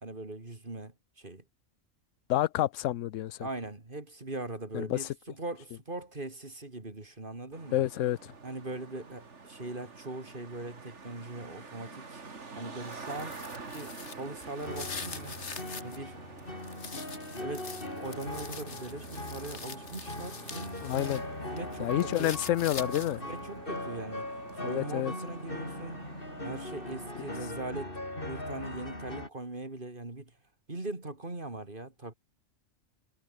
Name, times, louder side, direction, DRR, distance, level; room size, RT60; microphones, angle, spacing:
voice 1, 0.0-1.4 3.4-7.8 8.4-12.2 12.6-13.4 13.7-15.4 15.8-16.2 17.4-17.7 18.0-20.7 21.5-22.3 23.2-24.3 24.6-26.0 26.4-30.3 30.7-32.1, right 2 dB, 40° right, 3.5 m, -40 dB
voice 2, 2.3-3.4 4.7-5.1 7.7-8.3 20.8-21.2 21.8-23.2 24.6-25.1, left 13 dB, 80° left, 1.0 m, -29 dB
Traffic noise roadway noise, 7.5-27.5, right 4 dB, 65° right, 2.6 m, -48 dB
sound 1, 12.8-16.0 16.4-21.2 21.6-23.3, left 5 dB, 65° left, 2.2 m, -44 dB
sound 2, 14.6-29.3, left 1 dB, 45° left, 5.7 m, -40 dB
omnidirectional pair, 1.3 m